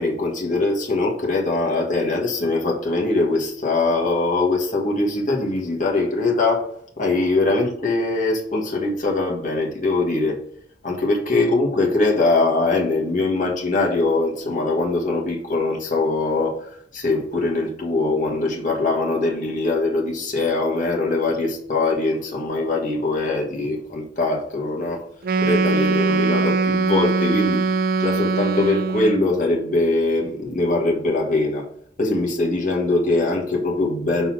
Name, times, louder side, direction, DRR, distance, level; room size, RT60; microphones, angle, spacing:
voice 1, 0.0-6.7 7.0-10.4 10.8-25.0 25.4-27.6 28.0-31.6 32.0-34.3, left 2 dB, 45° left, -2 dB, 1.6 m, -22 dB
Wind instrument woodwind instrument, 25.2-29.3, right 4 dB, 50° right, 0.4 m, -21 dB
5.7 x 4.1 x 6.2 m, 0.67 s
head